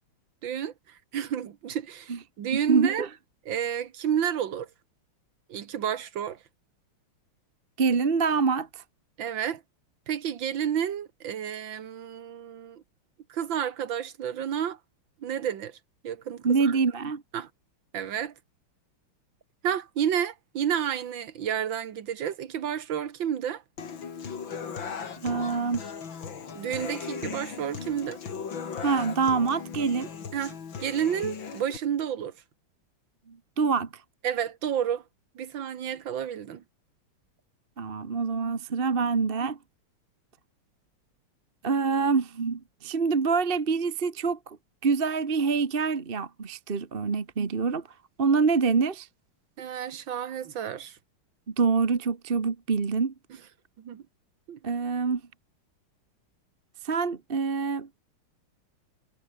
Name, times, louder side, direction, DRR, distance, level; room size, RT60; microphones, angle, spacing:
voice 1, 0.4-3.1 3.5-4.7 5.5-6.4 9.2-9.6 10.1-12.8 13.3-14.8 15.2-15.8 16.0-16.8 17.3-17.5 17.9-18.3 19.6-23.6 26.5-28.2 30.3-32.3 34.2-35.0 35.4-36.6 49.6-51.0 53.8-54.0 54.5-54.6, right 9 dB, 60° right, 2.1 m, -30 dB
voice 2, 2.7-3.1 7.8-8.8 16.4-17.2 25.2-25.8 28.8-30.1 33.3-33.9 37.8-39.6 41.6-44.6 44.8-47.8 48.2-49.1 51.5-53.1 54.6-55.2 56.8-57.9, right 5 dB, 30° right, 1.3 m, -26 dB
Human voice / Acoustic guitar, 23.8-31.8, left 6 dB, 60° left, 2.9 m, -37 dB
omnidirectional pair, 2.4 m